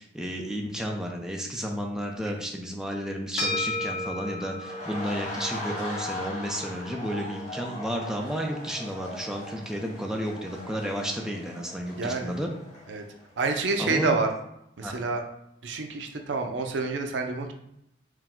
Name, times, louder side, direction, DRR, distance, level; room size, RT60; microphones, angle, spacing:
voice 1, 0.0-12.5 13.8-14.1 14.8-14.9, equal, 5° right, 0 dB, 0.5 m, -32 dB
sound 1, 3.4-12.0, left 2 dB, 70° left, 1.4 m, -38 dB
sound 2, 4.5-13.4 13.7-13.9, left 1 dB, 40° left, 1.2 m, -39 dB
voice 2, 12.0-12.4 12.9-13.0 13.4-14.3 14.8-15.2 15.6-17.5, right 3 dB, 75° right, 5 dB, 0.5 m, -28 dB
4.6 x 2.1 x 3.6 m, 0.80 s
head